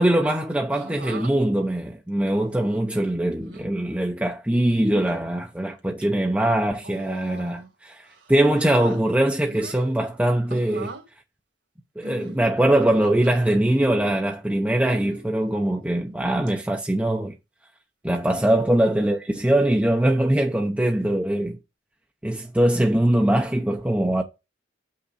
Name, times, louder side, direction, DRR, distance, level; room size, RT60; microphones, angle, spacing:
voice 1, 0.0-10.9 12.0-17.3 18.0-21.6 22.2-24.2, right 1 dB, 5° right, 0.6 m, -22 dB
sound 1, 0.7-1.3 2.3-2.8 3.4-3.7 4.7-5.3 5.8-6.1 6.8-7.7 8.1-9.0 9.4-9.9 10.5-11.1 12.0-13.6 14.8-15.2 15.9-16.2 16.5-16.6 18.2-18.6 19.6-19.9, right 2 dB, 65° right, 2.1 m, -42 dB
7.3 x 5.7 x 4.1 m
head